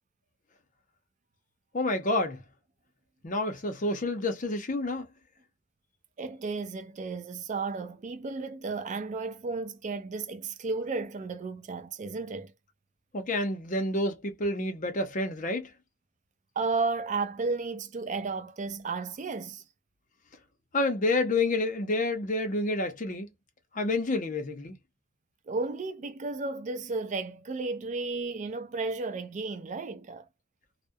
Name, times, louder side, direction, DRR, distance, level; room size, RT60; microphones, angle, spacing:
voice 1, 1.7-2.4 3.2-5.1 13.1-15.7 20.7-23.3 23.7-24.8, left 2 dB, 40° left, 0.6 m, -29 dB
voice 2, 6.2-12.5 16.6-19.6 25.5-30.3, right 3 dB, 35° right, 0.3 m, -33 dB
2.3 x 2.1 x 2.5 m
head